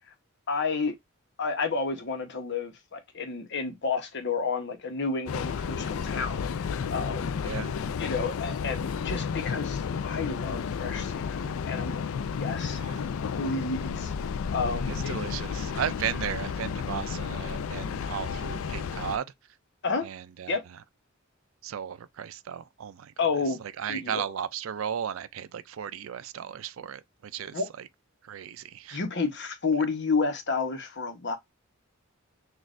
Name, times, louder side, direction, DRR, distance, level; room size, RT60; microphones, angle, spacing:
voice 1, 0.5-1.0 1.4-7.4 8.0-12.0 12.3-12.8 13.4-14.1 14.5-15.2 19.8-20.1 20.5-20.6 23.2-23.6 23.9-24.2 27.5-27.7 28.9-31.4, left 4 dB, 55° left, 0.9 m, -31 dB
Train, 5.3-19.2, left 6 dB, 80° left, 0.4 m, -32 dB
voice 2, 7.4-7.7 12.7-13.0 14.9-19.3 20.0-20.6 21.6-23.1 23.6-27.9 28.2-29.0, right 8 dB, 70° right, 0.4 m, -35 dB
6.1 x 2.4 x 2.5 m
head